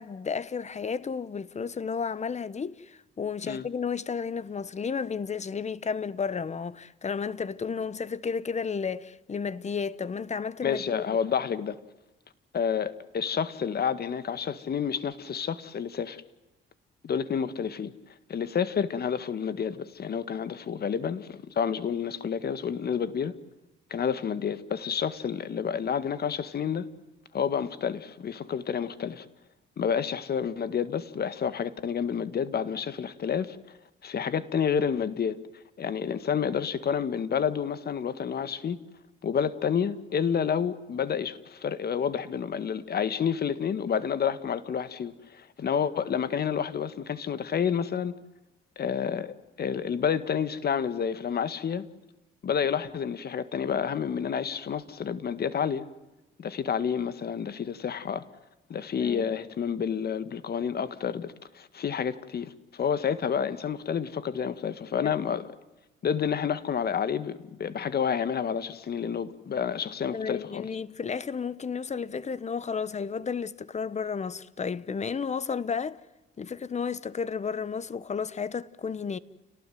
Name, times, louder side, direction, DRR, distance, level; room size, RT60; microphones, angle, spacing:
voice 1, 0.0-11.0 59.0-59.3 65.0-65.4 70.1-76.0 76.4-79.2, left 6 dB, 35° left, 1.1 m, -32 dB
voice 2, 10.6-11.8 12.5-16.2 17.0-18.0 18.3-23.3 23.9-26.9 27.3-29.3 29.8-33.6 34.0-35.4 35.8-38.8 39.2-48.2 48.8-51.9 52.4-55.8 56.4-58.2 58.7-65.5 66.0-70.7, left 7 dB, 50° left, 1.8 m, -29 dB
30.0 x 19.0 x 9.4 m
cardioid pair, 90°, 20 cm